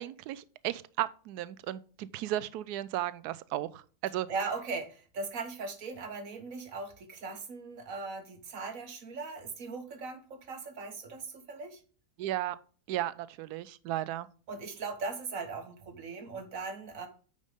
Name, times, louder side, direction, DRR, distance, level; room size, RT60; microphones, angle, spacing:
voice 1, 0.0-4.3 12.2-12.6 12.9-14.3, right 13 dB, 75° right, 1.1 m, -35 dB
voice 2, 4.3-11.8 14.5-17.1, right 4 dB, 55° right, 1.5 m, -39 dB
9.1 x 5.2 x 3.5 m
omnidirectional pair, 1.8 m